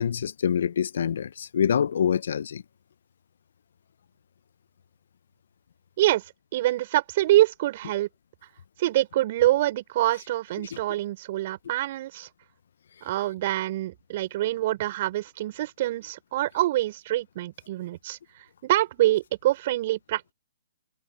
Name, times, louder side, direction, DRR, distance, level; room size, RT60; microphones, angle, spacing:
voice 1, 0.0-2.6, left 8 dB, 65° left, 0.7 m, -25 dB
voice 2, 6.5-8.1 8.8-12.3 13.0-20.3, right 15 dB, 45° right, 6.0 m, -25 dB
hypercardioid pair, 140°, 0 cm